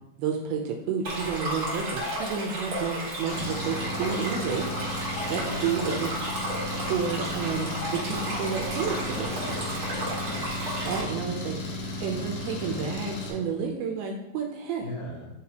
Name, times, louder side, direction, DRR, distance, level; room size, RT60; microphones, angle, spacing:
voice 1, 0.2-4.7 5.3-6.1 6.8-9.3 10.8-14.9, right 6 dB, 80° right, 1 dB, 2.3 m, -30 dB
Stream, 1.0-11.0, right 1 dB, 50° right, 1.4 m, -33 dB
sound 1, 2.0-2.5 4.0-4.1 4.4-4.6 5.0-5.9 6.2-6.3 7.1-7.2 7.8-8.4 8.8-8.9, left 2 dB, 50° left, 3.9 m, -40 dB
Engine, 3.3-13.3, left 1 dB, 85° left, 3.3 m, -35 dB
voice 2, 5.4-6.1 9.1-10.5 14.8-15.3, left 2 dB, 70° left, -1 dB, 2.2 m, -39 dB
10.0 x 4.0 x 2.8 m, 0.92 s
omnidirectional pair, 5.1 m